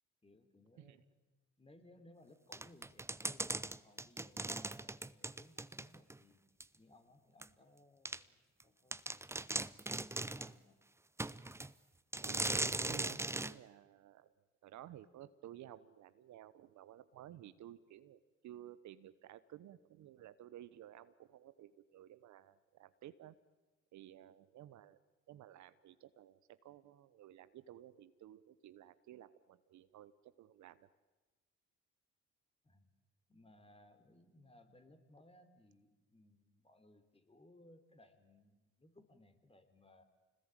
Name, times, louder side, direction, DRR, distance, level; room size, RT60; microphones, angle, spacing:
voice 1, 0.2-1.3 1.6-6.4 6.8-10.7 32.6-32.9 33.3-40.0, left 1 dB, 20° left, 8 dB, 3.5 m, -64 dB
sound 1, 2.5-6.2 6.6-6.7 7.4-7.5 8.0-8.2 8.6-8.7 8.9-10.5 11.2-11.7 12.1-13.5, right 2 dB, 10° right, 0.8 m, -39 dB
voice 2, 12.2-14.3 14.6-23.3 23.9-25.0 25.3-30.9, right 12 dB, 65° right, 14 dB, 1.1 m, -55 dB
26.0 x 20.0 x 9.0 m, 1.2 s
hypercardioid pair, 60°, 31 cm